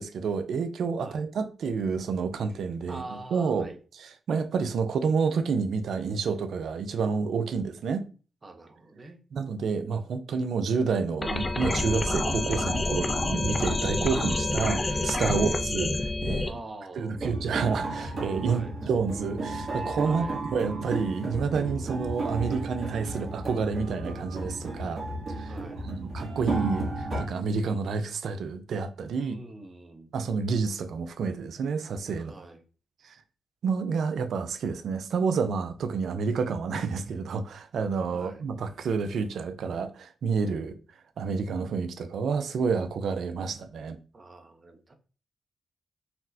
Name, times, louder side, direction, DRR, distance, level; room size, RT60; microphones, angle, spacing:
voice 1, 0.0-3.7 4.0-8.1 9.3-16.5 17.0-25.0 25.3-25.6 25.8-29.3 30.1-32.3 33.0-33.2 33.6-40.8 41.2-44.0, right 5 dB, 75° right, 0.4 m, -29 dB
voice 2, 2.9-3.8 8.4-9.2 15.2-15.4 16.5-17.2 18.5-18.7 20.0-20.4 25.5-25.8 29.2-30.1 32.2-32.6 38.1-38.5 44.1-44.9, right 2 dB, 35° right, 0.7 m, -44 dB
sound 1, 11.2-16.5, left 2 dB, 30° left, 0.4 m, -28 dB
sound 2, 17.1-27.2, right 2 dB, 55° right, 1.1 m, -33 dB
4.1 x 2.1 x 2.7 m
supercardioid pair, 55°, 0 cm